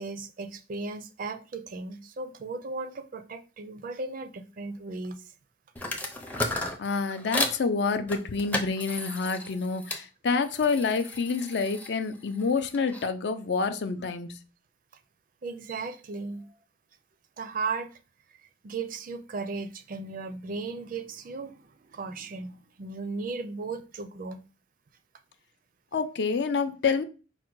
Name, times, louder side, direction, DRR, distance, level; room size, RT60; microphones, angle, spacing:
voice 1, 0.0-5.3 15.4-16.5 17.4-17.9 18.3-24.4, right 3 dB, 45° right, 0.4 m, -36 dB
sound 1, 5.8-7.6 8.1-10.0 10.4-13.1, left 1 dB, 10° left, 0.5 m, -34 dB
voice 2, 6.8-14.4 25.9-27.0, left 4 dB, 60° left, 0.5 m, -28 dB
4.9 x 2.2 x 4.5 m
head